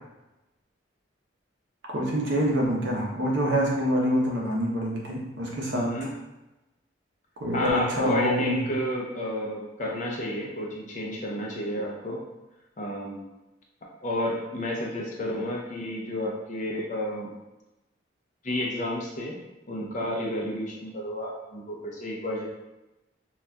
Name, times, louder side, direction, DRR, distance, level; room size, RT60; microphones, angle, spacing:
voice 1, 1.9-6.1 7.4-8.5, equal, 65° right, -3 dB, 0.7 m, -26 dB
voice 2, 5.7-6.1 7.5-12.2 12.8-13.2 14.0-17.3 18.4-19.4 19.7-22.5, equal, 40° left, -2 dB, 0.5 m, -31 dB
3.9 x 2.3 x 2.2 m, 1.0 s
head